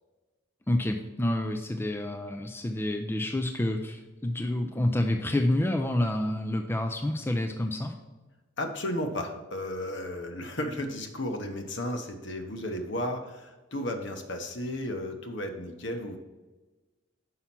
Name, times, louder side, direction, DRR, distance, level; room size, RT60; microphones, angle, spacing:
voice 1, 0.7-7.9, left 1 dB, 10° left, 5 dB, 0.4 m, -28 dB
voice 2, 8.6-16.2, left 1 dB, 60° left, 5 dB, 1.0 m, -34 dB
5.7 x 5.6 x 5.9 m, 1.2 s
head